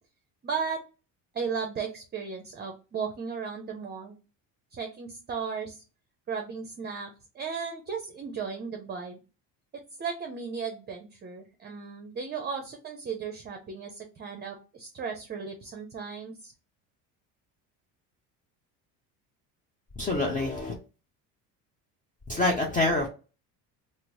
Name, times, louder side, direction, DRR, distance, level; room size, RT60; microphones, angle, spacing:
voice 1, 0.4-0.8 1.3-4.2 4.7-5.8 6.3-9.2 9.7-16.5, right 6 dB, 25° right, 4 dB, 0.6 m, -35 dB
voice 2, 20.0-20.7 22.3-23.1, left 2 dB, 20° left, 0 dB, 0.6 m, -26 dB
2.9 x 2.0 x 4.0 m, 0.33 s
supercardioid pair, 95°, 38 cm